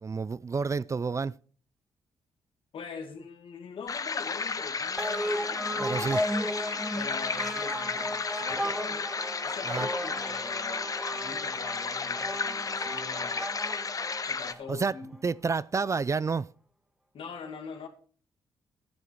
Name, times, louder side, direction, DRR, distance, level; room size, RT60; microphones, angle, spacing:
voice 1, 0.0-1.3 5.8-6.2 9.7-9.9 14.7-14.9 15.2-16.5, right 4 dB, 30° right, 0.4 m, -29 dB
voice 2, 2.7-6.2 6.9-9.1 9.4-13.5 14.3-15.2 17.1-17.9, left 5 dB, 65° left, 2.3 m, -43 dB
sound 1, 3.9-14.5, left 5 dB, 35° left, 0.8 m, -33 dB
sound 2, 5.0-14.8, equal, 5° right, 1.2 m, -35 dB
11.0 x 9.7 x 4.6 m
supercardioid pair, 60°, 10 cm